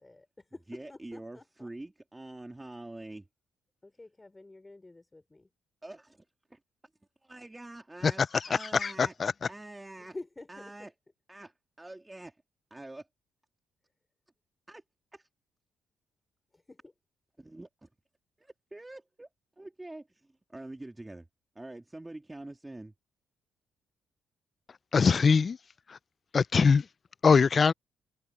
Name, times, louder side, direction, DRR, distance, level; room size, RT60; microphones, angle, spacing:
voice 1, 0.0-1.7 3.8-5.5 10.0-10.7 16.5-16.9, left 2 dB, 15° left, 3.5 m, -48 dB
voice 2, 0.7-3.3 5.8-6.2 6.5-6.6 7.2-9.1 9.5-10.2 10.5-10.9 11.3-12.4 12.7-13.1 14.7-14.8 15.1-15.3 17.4-17.9 18.4-19.3 19.6-21.3 21.5-22.9, right 2 dB, 15° right, 2.9 m, -45 dB
voice 3, 8.0-9.3 24.9-25.6 25.9-26.0 26.3-26.9 27.2-27.7, left 5 dB, 40° left, 0.4 m, -23 dB
cardioid pair, 90°, 0 cm